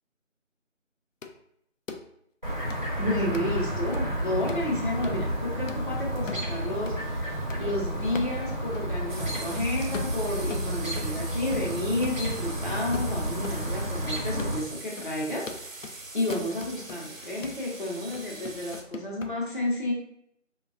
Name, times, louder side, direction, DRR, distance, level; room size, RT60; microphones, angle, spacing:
sound 1, 1.2-1.3 1.9-2.0 2.7-2.8 3.3-3.5 3.9-4.0 4.5-4.7 5.0-5.2 5.7-5.8 6.3-6.5 6.9-7.0 7.5-7.6 8.1-8.4 8.7-8.8 9.3-9.5 9.9-11.2 11.5-11.8 12.0-13.6 13.9-14.0 14.4-14.6 15.0-15.1 15.5-16.0 16.3-17.0 17.4-17.6 18.1-19.3, left 4 dB, 80° left, 0.5 m, -40 dB
Chirp tweet, 2.4-14.6, right 1 dB, 35° right, 0.7 m, -31 dB
voice 1, 3.0-19.9, left 1 dB, 40° left, -5 dB, 0.7 m, -31 dB
sound 2, 9.1-18.8, right 2 dB, 85° right, 0.8 m, -43 dB
4.9 x 2.2 x 2.5 m, 0.73 s
figure-of-eight pair, 170°, 38 cm